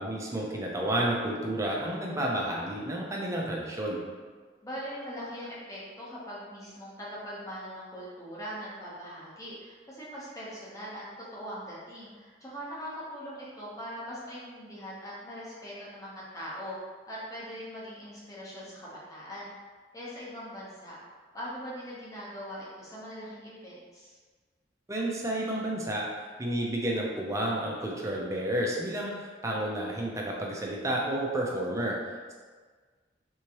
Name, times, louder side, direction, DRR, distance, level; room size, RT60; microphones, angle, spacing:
voice 1, 0.0-4.0 24.9-26.1 26.4-32.0, right 1 dB, 15° right, -2 dB, 0.5 m, -31 dB
voice 2, 4.6-16.7 17.1-19.5 19.9-20.9 21.3-24.2, equal, 20° left, -7 dB, 0.9 m, -41 dB
3.5 x 3.0 x 2.9 m, 1.5 s
head